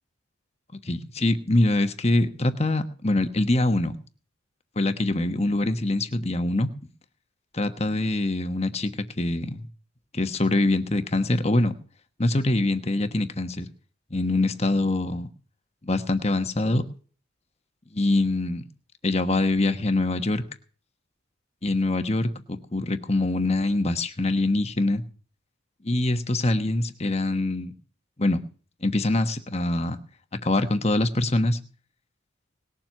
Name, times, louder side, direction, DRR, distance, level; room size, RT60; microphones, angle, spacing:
voice 1, 0.8-4.0 4.8-6.7 7.5-8.9 9.2-9.7 10.1-11.7 12.2-13.7 14.1-15.3 15.8-16.8 17.9-18.6 19.0-20.4 21.6-25.0 25.9-27.7 28.2-28.4 28.8-30.0 30.4-31.6, left 2 dB, 30° left, 9 dB, 1.2 m, -24 dB
19.5 x 7.5 x 6.6 m, 0.41 s
head